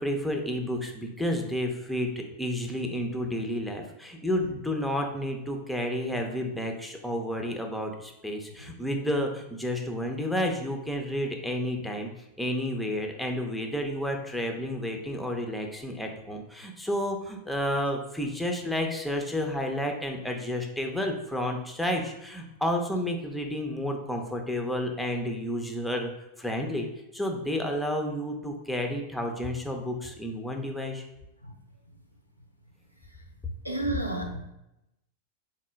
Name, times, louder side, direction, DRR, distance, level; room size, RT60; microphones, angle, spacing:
voice 1, 0.0-12.1 12.4-26.1 26.4-26.9 27.1-31.0, equal, ahead, 2 dB, 0.5 m, -31 dB
voice 2, 33.6-34.5, right 2 dB, 90° left, 1 dB, 0.4 m, -31 dB
3.6 x 2.1 x 3.2 m, 0.87 s
figure-of-eight pair, 90°, 0 cm